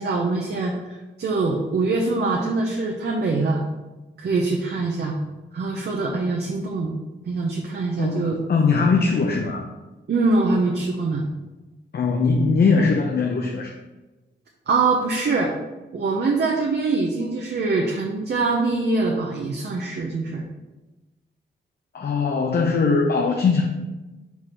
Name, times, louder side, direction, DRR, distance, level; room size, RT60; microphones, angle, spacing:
voice 1, 0.0-3.6 4.2-5.2 5.5-6.9 7.3-8.4 10.1-11.3 14.7-15.5 15.9-20.4, right 3 dB, 65° right, 0 dB, 0.8 m, -23 dB
voice 2, 8.0-9.7 11.9-13.7 21.9-23.7, left 4 dB, 60° left, 2 dB, 0.7 m, -20 dB
4.7 x 4.3 x 4.9 m, 1.1 s
cardioid pair, 85°, 19 cm